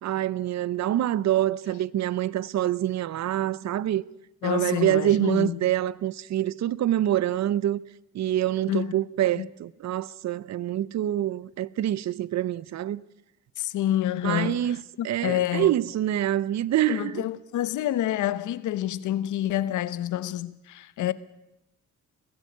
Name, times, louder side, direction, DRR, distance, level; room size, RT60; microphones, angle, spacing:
voice 1, 0.0-4.1 4.4-7.8 8.1-13.0 14.2-14.8 15.0-17.2, right 12 dB, 65° right, 0.8 m, -26 dB
voice 2, 4.4-5.6 8.7-8.9 9.4-9.5 13.6-15.7 16.9-21.1, left 12 dB, 80° left, 1.0 m, -28 dB
22.0 x 15.0 x 8.6 m
cardioid pair, 90°, 30 cm